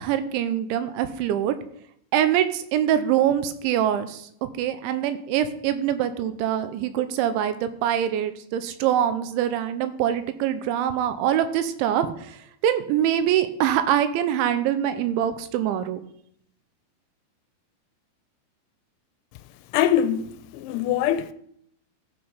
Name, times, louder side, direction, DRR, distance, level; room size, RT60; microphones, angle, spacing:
voice 1, 0.0-1.6 2.1-12.4 12.6-16.0, right 10 dB, 80° right, 3.0 m, -24 dB
voice 2, 19.7-21.3, left 10 dB, 85° left, 2.9 m, -23 dB
14.0 x 5.9 x 5.1 m
omnidirectional pair, 5.5 m